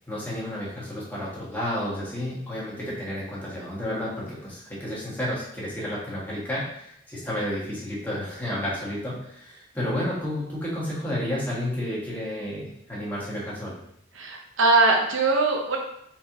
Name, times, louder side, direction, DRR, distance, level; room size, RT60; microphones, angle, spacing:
voice 1, 0.1-13.8, left 1 dB, 10° left, -7 dB, 1.4 m, -31 dB
voice 2, 14.1-15.8, right 3 dB, 75° right, 0 dB, 0.8 m, -21 dB
4.2 x 3.9 x 2.9 m, 0.75 s
head